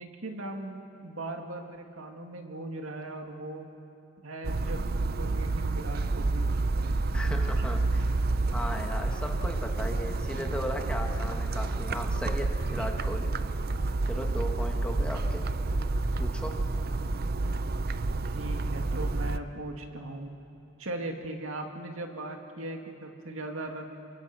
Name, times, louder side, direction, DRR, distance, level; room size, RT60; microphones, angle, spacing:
voice 1, 0.0-3.8 4.2-6.5 18.3-20.3 20.8-23.8, right 2 dB, 85° right, 3 dB, 2.2 m, -39 dB
sound 1, 4.4-19.4, right 2 dB, 50° right, 0.6 m, -29 dB
voice 2, 7.1-8.1 8.5-13.3 14.0-15.5 16.2-16.7, equal, 5° left, 2 dB, 1.4 m, -36 dB
27.0 x 24.0 x 6.1 m, 2.8 s
head